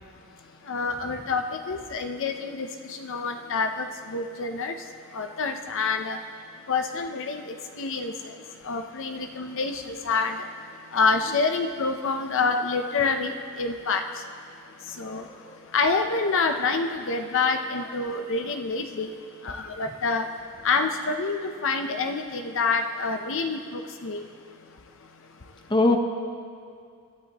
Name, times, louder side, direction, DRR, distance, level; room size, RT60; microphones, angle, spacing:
voice 1, 0.7-2.7 3.0-3.9 4.1-4.7 5.1-6.2 6.7-7.4 7.8-8.1 8.7-10.3 10.9-13.3 13.6-14.0 15.0-15.2 15.7-19.1 19.4-20.3 20.6-24.2, left 4 dB, 60° left, 5 dB, 0.7 m, -27 dB
voice 2, 15.0-15.6 19.5-19.6 25.7-26.0, left 2 dB, 20° left, 4 dB, 0.9 m, -24 dB
26.0 x 11.0 x 3.0 m, 2.3 s
head